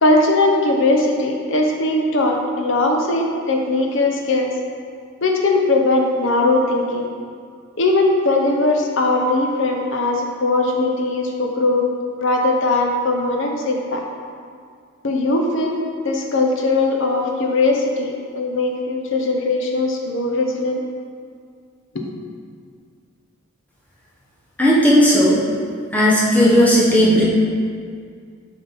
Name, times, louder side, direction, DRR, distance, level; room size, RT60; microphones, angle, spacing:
voice 1, 0.0-4.5 5.2-7.1 7.8-11.9 12.2-14.0 15.0-15.8 16.0-20.8 21.9-22.1, left 2 dB, 55° left, 1 dB, 0.8 m, -19 dB
voice 2, 24.6-25.4 25.9-27.2, equal, 5° left, -6 dB, 1.1 m, -14 dB
6.7 x 5.3 x 4.1 m, 2.2 s
head